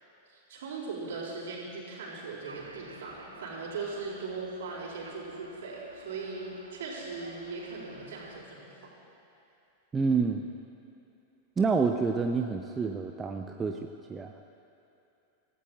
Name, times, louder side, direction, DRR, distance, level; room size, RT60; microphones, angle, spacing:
voice 1, 0.3-8.9, right 4 dB, 60° right, -5 dB, 4.1 m, -39 dB
sound 1, 2.4-8.4, right 2 dB, 80° right, 0.9 m, -51 dB
voice 2, 9.9-10.4 11.6-13.8 14.1-14.3, right 4 dB, 15° right, 5 dB, 0.6 m, -28 dB
26.0 x 15.0 x 2.4 m, 2.8 s
figure-of-eight pair, 90°, 0 cm